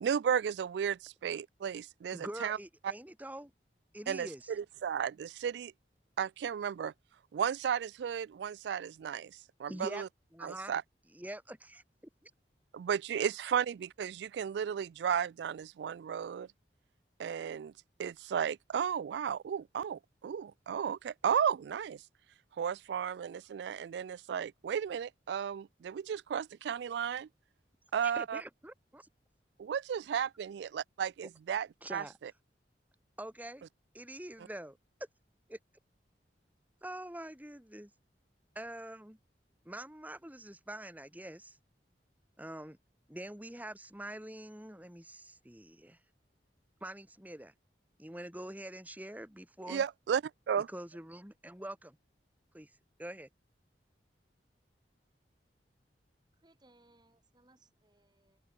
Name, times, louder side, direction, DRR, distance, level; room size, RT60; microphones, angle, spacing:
voice 1, 0.0-2.6 4.1-4.3 4.6-5.7 6.2-6.9 7.3-10.1 10.4-10.8 12.7-16.5 17.2-17.7 18.0-22.0 22.6-27.3 27.9-28.4 29.6-32.3 49.7-50.2 50.5-50.7, right 8 dB, 70° right, 0.3 m, -34 dB
voice 2, 2.1-3.5 3.9-4.5 9.7-10.0 10.3-10.7 11.1-11.8 12.2-12.3 28.0-29.1 31.8-32.1 33.2-33.7 33.9-34.8 35.5-35.6 36.8-37.9 38.6-39.2 39.7-41.6 42.4-42.8 43.1-46.0 46.8-47.5 48.0-49.8 50.7-52.0 52.5-53.3, right 1 dB, 10° right, 2.2 m, -45 dB
voice 3, 56.4-58.4, right 2 dB, 25° right, 4.0 m, -66 dB
open air
head